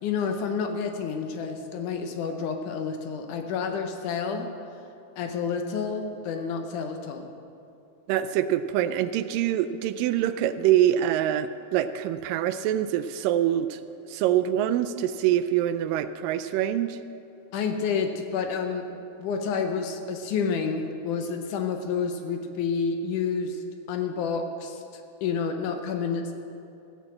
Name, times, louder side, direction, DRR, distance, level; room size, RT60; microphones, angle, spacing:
voice 1, 0.0-4.5 5.2-7.3 17.5-18.9 19.2-26.3, left 5 dB, 75° left, 5 dB, 2.1 m, -29 dB
voice 2, 8.1-13.8 14.1-17.0, right 11 dB, 80° right, 12 dB, 2.1 m, -25 dB
16.0 x 7.2 x 7.6 m, 2.7 s
omnidirectional pair, 4.0 m